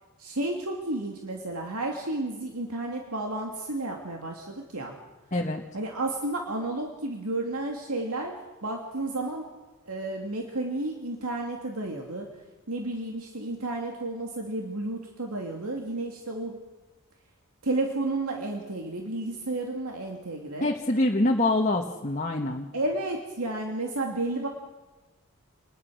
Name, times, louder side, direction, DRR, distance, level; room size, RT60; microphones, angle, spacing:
voice 1, 0.2-4.9 5.7-8.3 8.6-9.5 9.8-12.3 12.7-16.6 17.6-20.7 22.7-24.5, right 2 dB, 85° right, 1 dB, 2.6 m, -32 dB
voice 2, 5.3-5.6 20.6-22.6, left 2 dB, 35° left, 1 dB, 1.4 m, -25 dB
27.5 x 20.5 x 6.4 m, 1.2 s
head